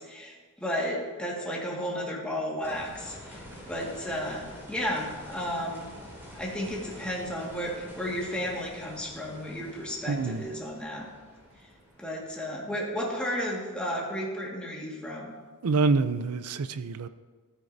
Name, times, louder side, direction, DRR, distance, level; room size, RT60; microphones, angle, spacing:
voice 1, 0.0-3.4 3.7-5.9 6.3-11.1 12.0-15.3, equal, 5° left, -4 dB, 1.8 m, -33 dB
sound 1, 2.6-13.5 15.8-15.9, equal, 10° right, 2.8 m, -47 dB
voice 2, 10.1-10.5 15.6-17.1, right 4 dB, 85° right, 12 dB, 0.5 m, -26 dB
13.5 x 8.9 x 2.7 m, 1.4 s
head